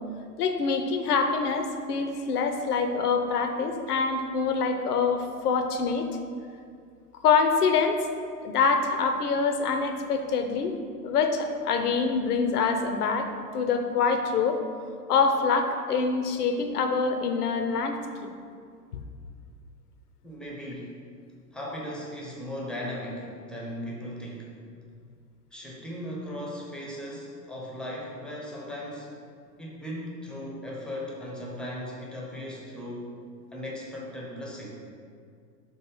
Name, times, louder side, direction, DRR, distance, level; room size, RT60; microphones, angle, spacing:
voice 1, 0.4-6.1 7.2-8.0 8.4-10.7 11.0-14.6 15.1-18.0, left 5 dB, 65° left, 6 dB, 0.8 m, -25 dB
voice 2, 20.2-21.0 21.5-24.5 25.5-29.1 29.6-33.1 33.5-34.7, equal, ahead, -4 dB, 0.9 m, -37 dB
5.6 x 3.9 x 5.4 m, 2.2 s
figure-of-eight pair, 100°, 50 cm